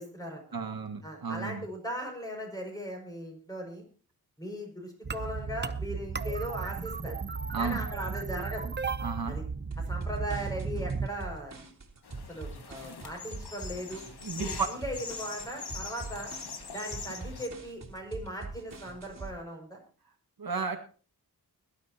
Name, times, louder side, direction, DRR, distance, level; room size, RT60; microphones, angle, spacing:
voice 1, 0.0-0.4 1.0-3.8 4.4-7.2 7.6-8.7 9.3-9.4 9.8-11.6 12.3-14.0 14.4-16.3 16.7-19.8, equal, 10° left, 1 dB, 6.0 m, -38 dB
voice 2, 0.5-1.7 7.5-7.9 9.0-9.4 14.2-14.7 20.4-20.8, right 5 dB, 65° right, 5 dB, 1.9 m, -33 dB
sound 1, 5.0-11.1, right 5 dB, 25° right, 0.7 m, -34 dB
sound 2, 9.7-19.3, right 3 dB, 45° right, 3.1 m, -43 dB
sound 3, 12.0-17.5, left 5 dB, 80° left, 1.9 m, -42 dB
21.5 x 12.0 x 2.9 m, 0.37 s
wide cardioid pair, 120°, 38 cm